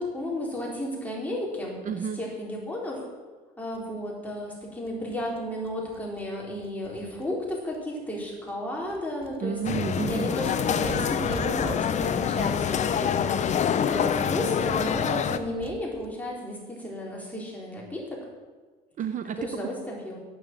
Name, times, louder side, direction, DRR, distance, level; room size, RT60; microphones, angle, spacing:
voice 1, 0.0-1.8 2.2-3.0 3.6-9.6 10.0-13.4 13.7-18.3 19.4-20.2, left 1 dB, 10° left, -3 dB, 3.8 m, -33 dB
voice 2, 1.8-2.2 9.4-10.3 19.0-19.7, right 7 dB, 50° right, 9 dB, 0.7 m, -31 dB
sound 1, 3.7-3.8 4.1-4.2 4.4-4.5 4.6-7.8 8.2-8.6 8.8-16.1, right 4 dB, 35° right, 1.1 m, -44 dB
sound 2, 9.6-15.4, left 8 dB, 45° left, 0.7 m, -26 dB
9.1 x 8.9 x 7.5 m, 1.4 s
cardioid pair, 110°, 17 cm